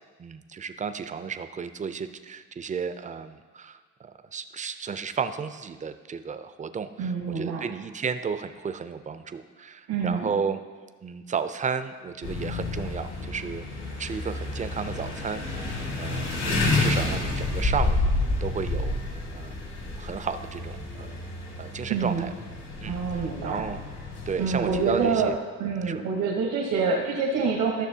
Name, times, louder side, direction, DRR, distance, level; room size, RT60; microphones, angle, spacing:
voice 1, 0.2-7.1 7.4-10.6 11.0-13.6 14.0-15.7 16.0-18.0 18.4-19.0 19.3-19.5 20.0-21.1 21.6-22.3 22.8-23.8 24.3-25.3 25.8-26.0, right 6 dB, 25° right, 10 dB, 0.4 m, -33 dB
voice 2, 7.0-7.6 9.9-10.3 21.9-22.3 22.9-23.7 24.4-25.3 25.6-27.9, right 5 dB, 85° right, -1 dB, 1.1 m, -26 dB
sound 1, 12.2-25.3, left 2 dB, 65° left, 1.9 m, -30 dB
12.5 x 6.5 x 2.8 m, 1.4 s
cardioid pair, 90°, 30 cm